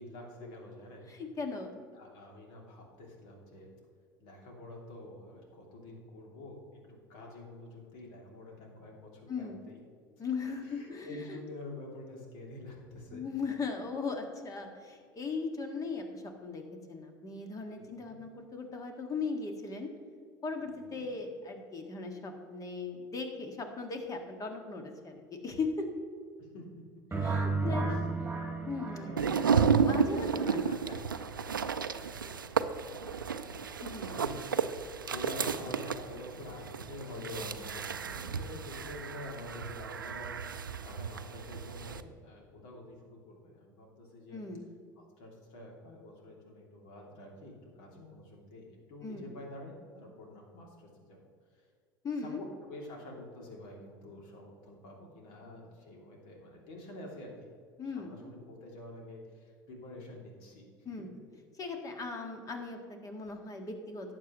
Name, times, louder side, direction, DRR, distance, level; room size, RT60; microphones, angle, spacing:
voice 1, 0.0-1.0 1.9-3.7 4.2-6.6 7.1-9.8 10.6-13.2 17.7-18.2 20.6-21.1 26.4-26.6 28.8-29.8 30.1-34.4 35.1-44.4 45.0-51.3 52.2-57.3 57.9-60.9, left 1 dB, 60° left, -1 dB, 2.8 m, -47 dB
voice 2, 1.1-1.7 9.3-9.6 10.2-11.4 13.1-19.9 20.4-25.9 27.2-28.0 28.7-29.2 29.7-30.6 33.8-34.1 44.3-44.6 49.0-49.3 52.0-52.4 57.8-58.2 60.9-61.1 61.5-64.2, left 4 dB, 35° left, 4 dB, 1.9 m, -38 dB
sound 1, 27.1-30.0, right 3 dB, 15° right, 2.3 m, -33 dB
sound 2, 29.2-42.0, right 6 dB, 90° right, 0.4 m, -32 dB
18.0 x 7.7 x 3.1 m, 2.1 s
figure-of-eight pair, 70°, 11 cm